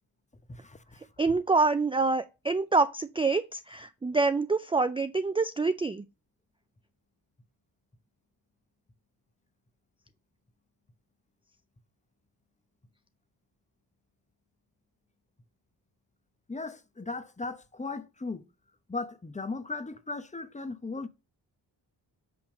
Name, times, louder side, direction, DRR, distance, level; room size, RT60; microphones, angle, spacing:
voice 1, 0.5-1.0 16.5-18.4 18.9-21.1, left 3 dB, 15° left, 0.8 m, -37 dB
voice 2, 1.2-6.0, right 3 dB, 10° right, 0.4 m, -26 dB
7.3 x 2.9 x 5.9 m
supercardioid pair, 50°, 49 cm